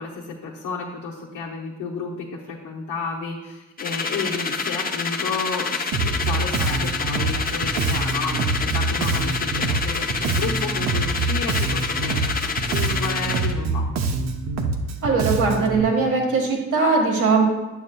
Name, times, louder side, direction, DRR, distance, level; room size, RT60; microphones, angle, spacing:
voice 1, 0.0-13.8, left 4 dB, 85° left, -4 dB, 0.9 m, -32 dB
sound 1, 3.8-13.5, left 5 dB, 30° left, 0.6 m, -27 dB
Bass guitar, 5.9-15.8, right 4 dB, 60° right, 0.7 m, -25 dB
voice 2, 15.0-17.4, right 4 dB, 90° right, 0 dB, 1.5 m, -20 dB
8.8 x 6.9 x 2.2 m, 1.1 s
cardioid pair, 90°, 30 cm